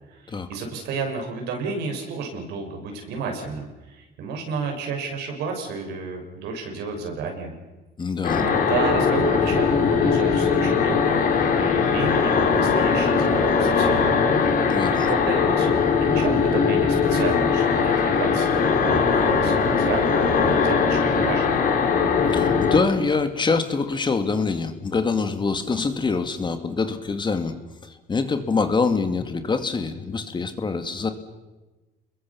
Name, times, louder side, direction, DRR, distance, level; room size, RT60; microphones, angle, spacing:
voice 1, 0.1-7.5 8.3-11.2 11.6-14.3 15.1-15.7 16.0-21.6, right 4 dB, 85° right, 3 dB, 6.2 m, -31 dB
voice 2, 8.0-8.4 14.7-15.1 22.3-27.5 28.1-31.1, left 4 dB, 25° left, 8 dB, 2.3 m, -25 dB
sound 1, 8.2-22.8, left 5 dB, 55° left, 4.0 m, -20 dB
30.0 x 21.5 x 7.1 m, 1.1 s
cardioid pair, 110°, 17 cm